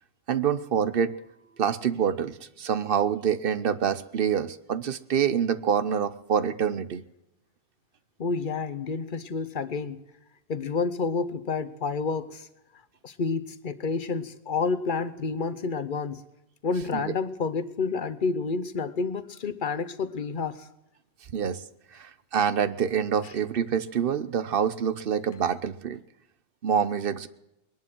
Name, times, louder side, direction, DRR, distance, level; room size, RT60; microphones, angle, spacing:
voice 1, 0.3-1.2 1.6-7.0 16.9-17.1 21.3-21.6 22.0-26.0 26.6-27.3, right 8 dB, 60° right, 15 dB, 0.9 m, -26 dB
voice 2, 8.2-10.0 10.5-12.5 13.0-16.2 16.6-20.7, left 4 dB, 50° left, 13 dB, 1.1 m, -29 dB
21.0 x 11.5 x 6.1 m, 0.88 s
omnidirectional pair, 1.1 m